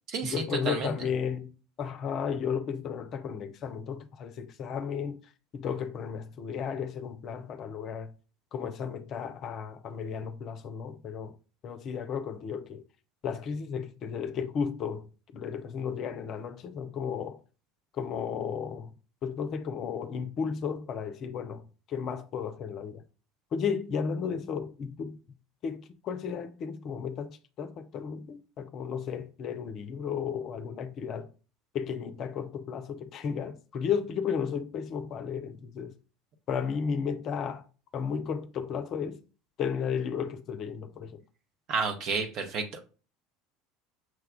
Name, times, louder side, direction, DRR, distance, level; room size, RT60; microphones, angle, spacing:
voice 1, 0.2-5.2 5.5-8.1 8.5-11.4 11.6-12.8 13.2-17.4 17.9-18.9 19.2-23.0 23.5-25.2 25.6-31.3 31.7-35.9 36.5-37.6 37.9-39.2 39.6-41.2, left 7 dB, 45° left, 0.5 m, -34 dB
voice 2, 41.7-42.8, right 5 dB, 45° right, 0.9 m, -30 dB
6.1 x 2.3 x 3.5 m
figure-of-eight pair, 70°, 0 cm